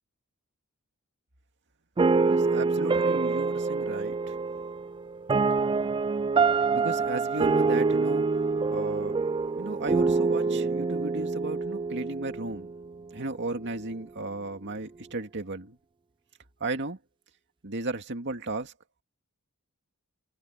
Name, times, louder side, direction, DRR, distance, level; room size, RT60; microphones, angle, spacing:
sound 1, 2.0-13.1, right 4 dB, 20° right, 0.3 m, -26 dB
voice 1, 2.2-4.3 6.6-8.3 8.7-9.2 9.6-12.7 13.1-15.8 16.6-17.0 17.6-18.7, right 2 dB, 55° right, 2.3 m, -35 dB
head